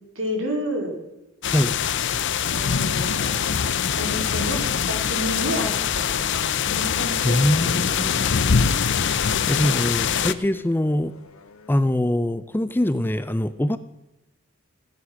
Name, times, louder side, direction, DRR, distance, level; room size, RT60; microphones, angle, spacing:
voice 1, 0.2-1.0 2.5-3.3 4.0-8.6, equal, 65° right, 2 dB, 3.8 m, -31 dB
sound 1, 1.4-10.3, left 7 dB, 60° left, 0.6 m, -23 dB
sound 2, 5.3-13.0, left 2 dB, 90° left, 1.3 m, -42 dB
voice 2, 7.2-8.5 8.9-11.1 11.7-13.8, left 1 dB, 10° left, 13 dB, 0.4 m, -23 dB
16.5 x 9.5 x 6.2 m, 0.96 s
head